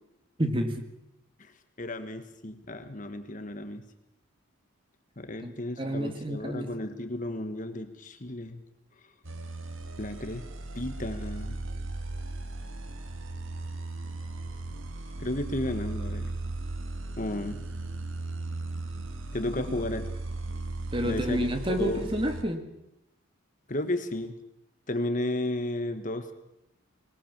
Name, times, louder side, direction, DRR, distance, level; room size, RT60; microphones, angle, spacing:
voice 1, 0.4-0.8 5.4-5.5 5.8-6.7 20.9-22.7, right 1 dB, 25° right, 6 dB, 1.9 m, -29 dB
voice 2, 1.8-3.8 5.2-8.6 10.0-10.4 10.7-11.6 15.2-16.3 17.2-17.6 19.3-20.1 21.0-22.1 23.7-24.4 24.9-26.3, left 1 dB, 35° left, 8 dB, 1.5 m, -33 dB
sound 1, 9.2-22.4, right 2 dB, 65° right, 1.8 m, -37 dB
21.5 x 20.0 x 7.4 m, 0.86 s
head